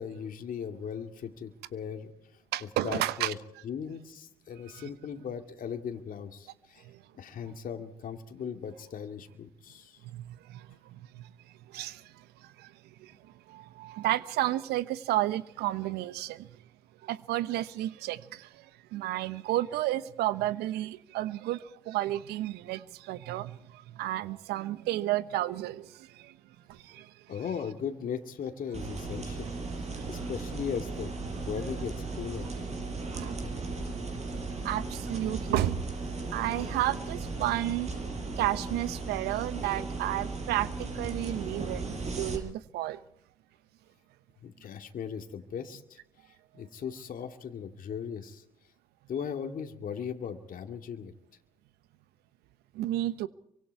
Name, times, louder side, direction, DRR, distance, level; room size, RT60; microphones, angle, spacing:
voice 1, 0.0-2.1 2.8-3.4 3.6-6.8 7.1-10.0 27.3-29.6 30.1-31.1 31.5-32.5 44.4-46.0 46.5-48.4 49.1-51.1, left 7 dB, 55° left, 2.3 m, -38 dB
voice 2, 2.5-3.3 4.7-4.9 6.8-7.0 7.4-7.5 10.0-11.3 11.7-12.7 13.0-16.5 17.0-26.4 26.7-27.1 29.9-30.1 32.9-33.3 34.6-35.8 36.3-37.9 38.4-43.0 52.7-53.3, right 14 dB, 70° right, 1.0 m, -32 dB
sound 1, 28.7-42.4, right 3 dB, 40° right, 6.5 m, -36 dB
27.5 x 24.5 x 4.7 m
hypercardioid pair, 55°, 17 cm